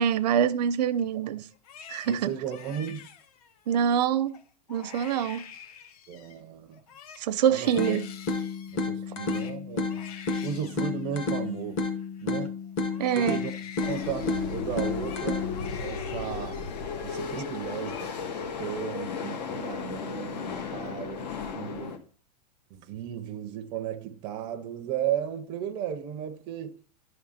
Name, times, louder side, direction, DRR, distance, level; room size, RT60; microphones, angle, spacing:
voice 1, 0.0-1.5 1.9-2.3 3.7-4.4 4.7-5.4 7.2-8.1 13.0-13.4, right 8 dB, 80° right, 0.6 m, -25 dB
Crying sobbing, 1.5-3.8 4.3-4.4 4.7-6.4 6.7-12.5 12.9-16.8 17.1-17.5 17.8-18.5 18.8-19.5, left 8 dB, 65° left, 0.8 m, -47 dB
voice 2, 2.0-3.1 6.1-6.8 7.5-8.0 8.7-10.1 10.4-11.8 12.2-12.6 13.2-13.5 13.9-15.5 15.8-16.7 17.0-22.0 22.7-26.8, right 9 dB, 20° right, 0.4 m, -35 dB
sound 1, 7.8-15.8, left 3 dB, 30° left, 0.7 m, -31 dB
sound 2, 13.8-22.0, left 5 dB, 85° left, 1.3 m, -35 dB
11.0 x 3.7 x 5.6 m
supercardioid pair, 175°, 21 cm